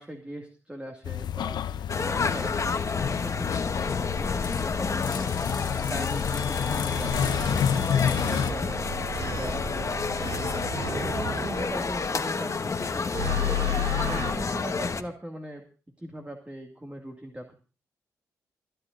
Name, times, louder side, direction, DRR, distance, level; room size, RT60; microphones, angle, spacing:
voice 1, 0.0-5.4 5.9-10.1 10.8-15.7 16.0-17.5, equal, 15° right, 3 dB, 2.1 m, -40 dB
sound 1, 1.0-8.5, left 8 dB, 70° left, 0.7 m, -29 dB
sound 2, 1.9-15.0, left 4 dB, 40° left, 1.3 m, -30 dB
sound 3, 6.9-12.7 13.1-14.3, left 2 dB, 80° right, 3.3 m, -32 dB
29.0 x 10.0 x 2.6 m, 0.35 s
supercardioid pair, 45°, 8 cm